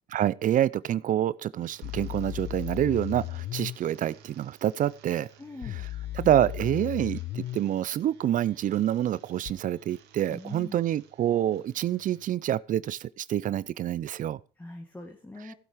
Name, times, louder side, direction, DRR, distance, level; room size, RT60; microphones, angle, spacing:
voice 1, 0.1-5.3 5.7-5.8 6.1-14.4 15.5-15.6, right 11 dB, 50° right, 0.5 m, -27 dB
sound 1, 1.5-12.3, right 7 dB, 90° right, 2.4 m, -57 dB
sound 2, 1.8-3.8 5.6-7.6 9.5-9.6, left 14 dB, 65° left, 0.5 m, -35 dB
voice 2, 5.4-5.8 10.3-10.8 14.6-15.5, left 2 dB, 10° left, 2.0 m, -42 dB
15.0 x 7.3 x 5.0 m
cardioid pair, 110°, 17 cm